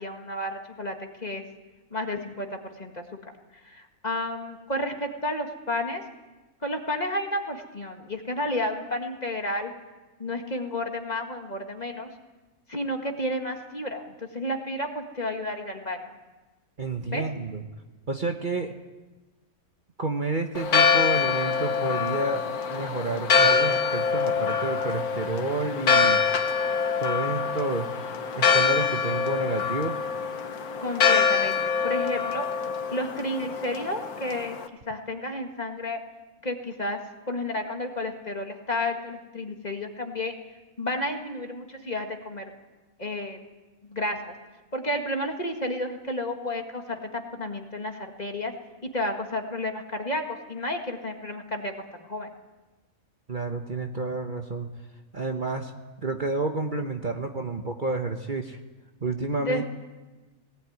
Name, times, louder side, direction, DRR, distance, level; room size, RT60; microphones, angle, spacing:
voice 1, 0.0-1.4 1.9-3.3 3.6-6.0 6.6-9.7 10.2-12.1 12.7-16.1 17.1-17.3 30.8-34.6 34.9-36.0 36.4-37.0 37.3-40.3 40.8-42.5 43.0-43.4 43.9-44.3 44.7-48.5 48.9-51.7 52.1-52.3 59.4-59.6, left 1 dB, 30° left, 3 dB, 1.9 m, -31 dB
voice 2, 16.8-17.6 18.1-18.7 20.0-22.4 22.7-26.2 27.0-27.9 28.3-30.0 53.3-54.7 55.1-55.7 56.0-58.6 59.0-59.6, right 3 dB, 35° right, 4 dB, 1.2 m, -30 dB
Church bell, 20.5-34.6, left 5 dB, 80° left, 1.7 m, -25 dB
19.0 x 17.5 x 9.5 m, 1.2 s
omnidirectional pair, 1.6 m